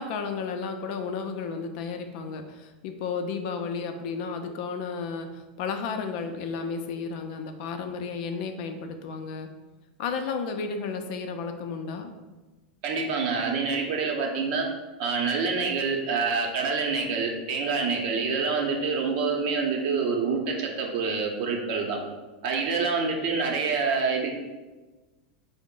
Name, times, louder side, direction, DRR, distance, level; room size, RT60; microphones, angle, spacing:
voice 1, 0.0-9.5 10.0-12.1, left 5 dB, 60° left, 6 dB, 0.4 m, -33 dB
voice 2, 12.8-14.7 15.0-22.0 22.4-24.3, right 4 dB, 60° right, 0 dB, 0.7 m, -26 dB
3.8 x 2.0 x 3.7 m, 1.2 s
hypercardioid pair, 115°, 5 cm